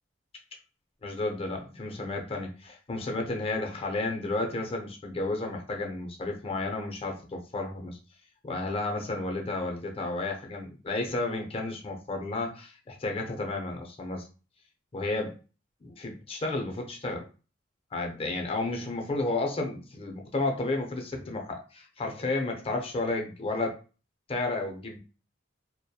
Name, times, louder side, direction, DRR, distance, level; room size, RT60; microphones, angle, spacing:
voice 1, 1.0-8.0 8.4-14.3 14.9-15.4 15.8-17.3 17.9-23.8 24.3-25.0, left 2 dB, 30° left, 2 dB, 0.5 m, -32 dB
2.7 x 2.1 x 2.2 m, 0.35 s
head